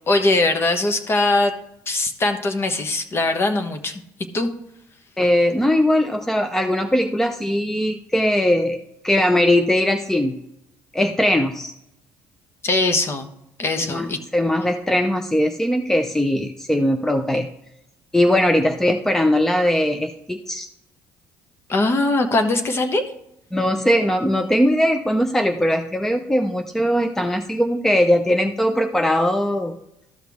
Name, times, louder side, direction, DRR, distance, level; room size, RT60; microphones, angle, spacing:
voice 1, 0.1-1.5 1.9-4.0 4.3-4.5 12.6-13.3 13.6-14.2 21.7-23.0, left 2 dB, 35° left, 6 dB, 1.1 m, -21 dB
voice 2, 5.2-8.8 9.0-10.4 10.9-11.7 13.8-14.1 14.3-17.5 18.1-20.7 23.5-29.7, left 1 dB, 5° left, 6 dB, 0.6 m, -20 dB
13.0 x 5.9 x 3.6 m, 0.82 s
supercardioid pair, 85°, 7 cm